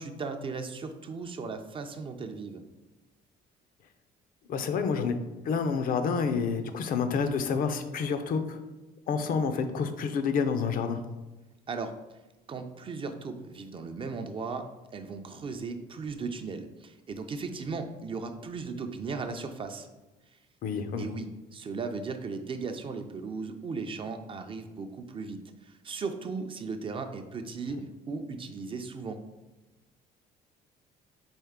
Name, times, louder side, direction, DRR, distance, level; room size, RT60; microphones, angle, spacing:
voice 1, 0.0-2.6 11.7-11.9 12.5-14.7 14.9-19.9 21.0-29.2, right 4 dB, 30° right, 7 dB, 0.4 m, -37 dB
voice 2, 4.5-5.1 5.4-8.6 9.1-11.0 20.6-21.1, left 5 dB, 55° left, 8 dB, 0.5 m, -28 dB
4.4 x 3.2 x 3.6 m, 1.1 s
cardioid pair, 110°, 17 cm